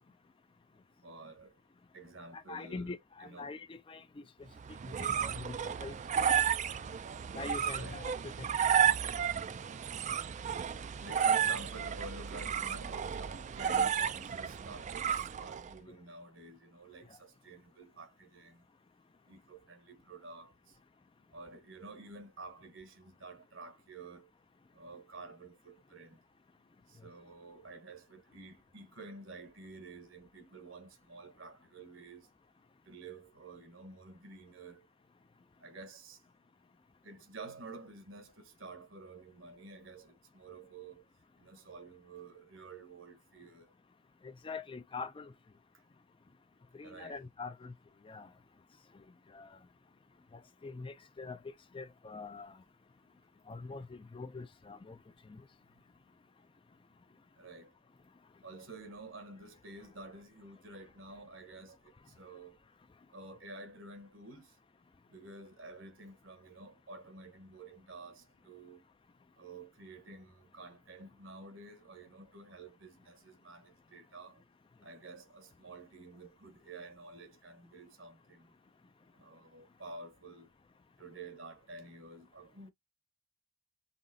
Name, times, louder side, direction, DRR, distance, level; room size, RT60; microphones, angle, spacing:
voice 1, 1.0-1.5 1.9-3.5 7.7-8.0 11.0-18.6 19.3-20.8 21.3-24.3 24.7-26.2 26.9-32.3 32.9-34.9 35.6-36.2 37.0-41.0 41.4-43.7 46.8-47.2 57.4-57.7 58.4-62.6 63.1-64.5 65.1-68.8 69.4-74.4 74.8-78.5 79.2-80.5 81.0-82.7, right 3 dB, 75° right, 1.2 m, -50 dB
voice 2, 2.3-4.2 4.7-5.9 7.3-8.5 8.7-8.9 44.2-45.3 46.7-47.7 48.0-48.3 49.3-49.5 50.3-51.4 51.7-52.6 53.5-55.0 55.3-55.4, left 4 dB, 25° left, 0.4 m, -44 dB
sound 1, 4.6-15.7, right 8 dB, 35° right, 0.4 m, -32 dB
5.7 x 3.1 x 2.7 m
head